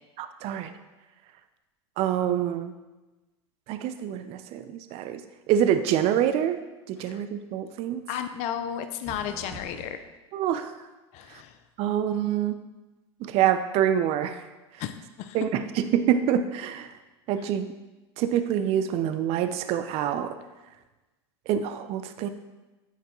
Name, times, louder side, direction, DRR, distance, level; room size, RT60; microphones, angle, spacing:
voice 1, 0.2-0.7 2.0-2.7 3.7-6.6 6.9-8.0 10.3-10.7 11.8-12.6 13.2-14.4 15.3-16.9 17.3-17.7 18.2-20.4 21.5-22.3, right 10 dB, 45° right, 10 dB, 0.4 m, -26 dB
voice 2, 8.1-10.0 11.1-11.6 14.8-15.4, left 9 dB, 50° left, 9 dB, 0.5 m, -34 dB
sound 1, 9.0-9.9, right 2 dB, 15° left, 1.5 m, -43 dB
8.2 x 4.5 x 3.0 m, 1.1 s
hypercardioid pair, 100°, 14 cm